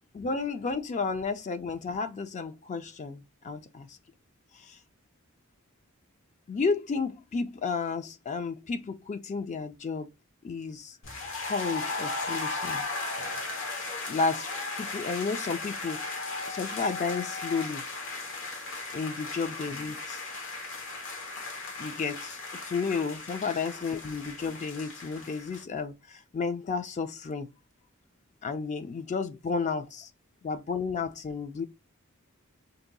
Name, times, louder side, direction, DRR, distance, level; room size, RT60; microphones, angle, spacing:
voice 1, 0.1-4.0 4.5-4.8 6.5-10.1 10.4-11.0 11.4-12.8 14.1-16.2 16.5-17.8 18.9-20.2 21.8-22.4 22.7-27.5 28.4-30.1 30.4-31.6, left 4 dB, 35° left, 0.3 m, -32 dB
sound 1, 11.0-25.6, left 3 dB, 60° left, 0.9 m, -36 dB
2.7 x 2.2 x 3.8 m
head